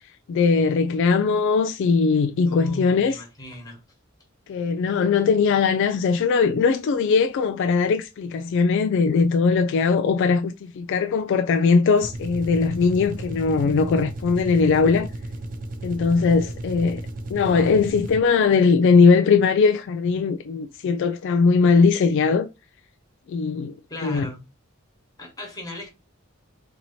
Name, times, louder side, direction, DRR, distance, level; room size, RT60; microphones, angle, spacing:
voice 1, 0.3-3.2 4.5-15.1 15.8-17.0 17.3-22.5 23.3-23.7 24.0-24.3, left 5 dB, 60° left, 0.3 m, -20 dB
voice 2, 2.5-3.8 23.9-24.4 25.2-25.9, left 1 dB, 20° left, 1.3 m, -36 dB
sound 1, 11.9-18.5, right 1 dB, 40° right, 0.6 m, -34 dB
2.9 x 2.7 x 4.2 m
head